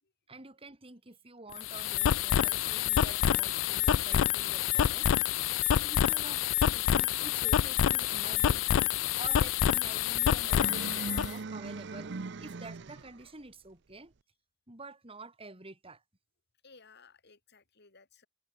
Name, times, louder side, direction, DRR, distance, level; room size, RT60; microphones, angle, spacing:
voice 1, 0.3-5.1 5.8-8.9 9.2-12.1 12.4-14.1 14.7-16.0, right 2 dB, 30° right, 3.2 m, -48 dB
sound 1, 1.5-11.3, left 10 dB, 70° left, 0.4 m, -27 dB
sound 2, 10.4-13.3, right 4 dB, 60° right, 0.7 m, -40 dB
voice 2, 16.6-18.3, left 4 dB, 55° left, 3.4 m, -59 dB
head